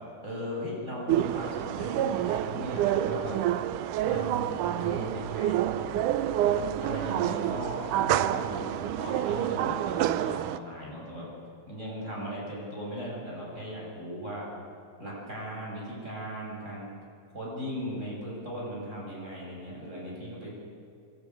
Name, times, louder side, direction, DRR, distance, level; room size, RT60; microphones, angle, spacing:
voice 1, 0.2-3.4 4.0-6.0 6.4-11.3 11.7-14.5 15.0-16.9 17.3-20.5, equal, 20° right, -4 dB, 7.2 m, -37 dB
sound 1, 1.1-10.6, right 12 dB, 80° right, 2.2 m, -28 dB
23.5 x 15.5 x 9.2 m, 2.4 s
omnidirectional pair, 3.6 m